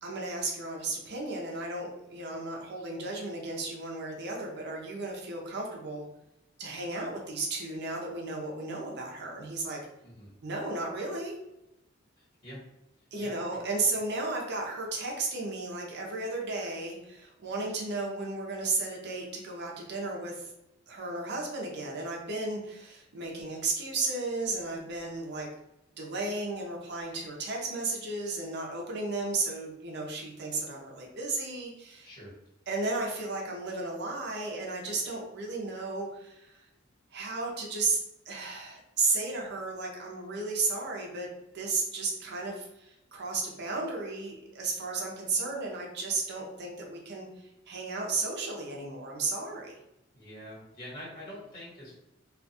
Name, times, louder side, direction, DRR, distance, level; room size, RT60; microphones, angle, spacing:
voice 1, 0.0-6.1 6.6-9.8 10.4-11.4 13.1-20.5 20.9-25.5 26.0-32.1 32.7-36.7 37.1-38.0 38.3-41.3 41.5-49.8, right 3 dB, 55° right, 0 dB, 0.6 m, -34 dB
voice 2, 12.2-12.6 13.2-13.4 32.0-32.4 50.1-52.0, equal, 45° left, -7 dB, 1.3 m, -45 dB
2.4 x 2.3 x 2.6 m, 0.88 s
head